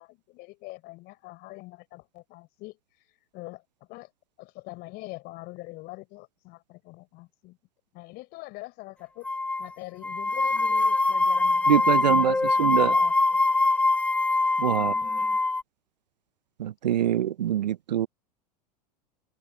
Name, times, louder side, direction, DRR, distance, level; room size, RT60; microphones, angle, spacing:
voice 1, 0.0-2.8 3.3-3.6 3.9-4.1 4.4-7.6 7.9-9.3 9.6-13.4 14.8-15.4, left 21 dB, 50° left, 5.0 m, -44 dB
sound 1, 9.2-9.7 10.0-15.6, left 3 dB, 5° left, 0.6 m, -23 dB
voice 2, 11.7-12.9 14.6-14.9 16.6-18.1, right 11 dB, 80° right, 0.7 m, -24 dB
hypercardioid pair, 95°, 21 cm